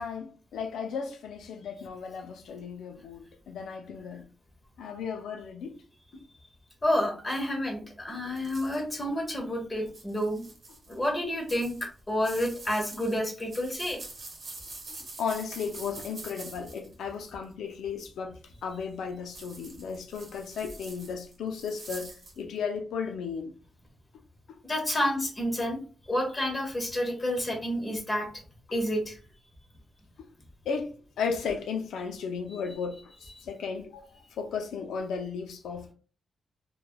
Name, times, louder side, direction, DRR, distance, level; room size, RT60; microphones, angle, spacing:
voice 1, 0.0-4.2 4.8-5.8 15.2-18.4 18.6-23.5 30.7-34.1 34.4-35.9, left 6 dB, 85° left, 0.4 m, -35 dB
voice 2, 6.8-10.5 10.9-14.0 24.6-25.8 26.1-28.3 28.7-29.2, equal, 25° left, 1.0 m, -29 dB
sound 1, 8.4-9.0 9.9-11.1 11.5-17.4 19.3-22.4, right 3 dB, 50° right, 0.9 m, -45 dB
3.2 x 2.2 x 2.2 m
cardioid pair, 90°, 0 cm